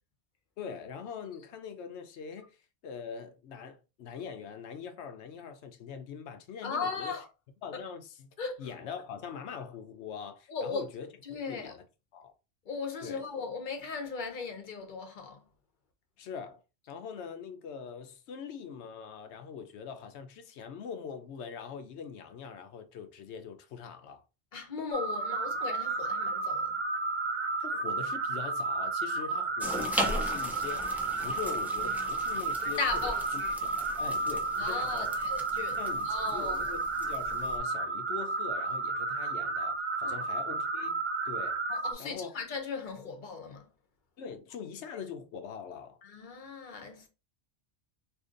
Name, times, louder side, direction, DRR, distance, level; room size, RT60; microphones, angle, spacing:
voice 1, 0.6-7.2 7.6-11.1 11.4-11.8 12.1-12.3 13.0-13.2 16.2-16.6 16.9-24.2 27.6-33.1 33.6-35.1 35.8-41.6 42.0-42.4 44.2-46.0, left 7 dB, 80° left, 0.9 m, -43 dB
voice 2, 6.6-7.3 7.7-7.8 8.4-8.6 10.5-10.8 11.2-11.8 12.7-15.4 24.5-26.7 32.6-33.5 34.6-35.8 36.0-36.6 40.0-40.2 41.7-43.6 46.0-47.1, left 4 dB, 50° left, 0.8 m, -37 dB
sound 1, 24.9-41.9, right 3 dB, 50° right, 0.6 m, -32 dB
sound 2, 29.6-37.6, equal, 5° right, 0.4 m, -39 dB
2.8 x 2.6 x 3.7 m
omnidirectional pair, 1.2 m